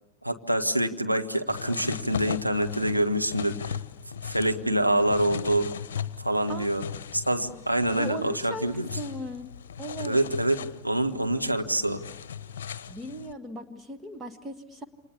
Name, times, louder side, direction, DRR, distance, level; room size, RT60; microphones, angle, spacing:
voice 1, 0.2-3.8 4.2-5.7 6.2-6.8 7.1-8.9 10.0-10.6 10.8-12.0, right 1 dB, 90° right, 4 dB, 1.3 m, -26 dB
sound 1, 1.5-13.3, left 8 dB, 60° left, 1.0 m, -38 dB
voice 2, 6.5-6.8 8.0-9.5 9.8-10.2 12.9-14.8, right 1 dB, 15° right, 7 dB, 1.7 m, -37 dB
29.0 x 26.5 x 7.0 m, 0.91 s
figure-of-eight pair, 90°, 0 cm